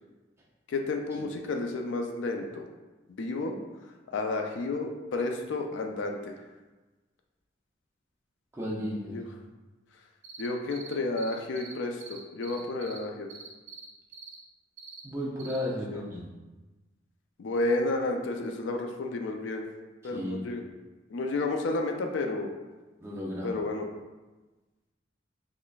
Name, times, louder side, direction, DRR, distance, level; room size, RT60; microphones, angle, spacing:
voice 1, 0.7-2.7 3.1-3.5 4.1-6.3 9.1-9.2 10.4-13.3 15.9-16.0 17.4-19.6 20.0-20.6 21.1-22.5 23.4-23.9, left 2 dB, 65° left, 3 dB, 0.3 m, -31 dB
voice 2, 8.5-9.2 15.0-16.3 20.1-20.4 23.0-23.6, left 1 dB, 15° right, -4 dB, 0.6 m, -34 dB
sound 1, 10.2-11.7 12.0-13.0 13.3-13.9 14.1-14.4 14.8-15.0 15.4-15.6, right 6 dB, 65° right, 0.8 m, -45 dB
3.8 x 3.1 x 2.3 m, 1.2 s
head